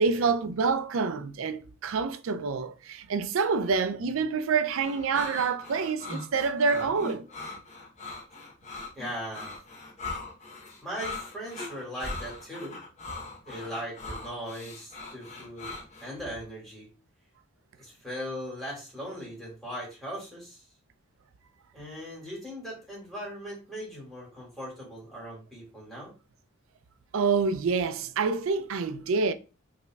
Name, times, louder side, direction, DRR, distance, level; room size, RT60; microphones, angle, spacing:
voice 1, 0.0-7.3 27.1-29.3, right 5 dB, 70° right, 0.4 m, -27 dB
sound 1, 4.8-16.1, left 3 dB, 35° left, 0.9 m, -40 dB
voice 2, 9.0-9.6 10.8-12.8 13.5-15.7 16.0-16.9 17.8-20.6 21.7-26.1, equal, ahead, 2.0 m, -39 dB
5.5 x 3.1 x 2.3 m
head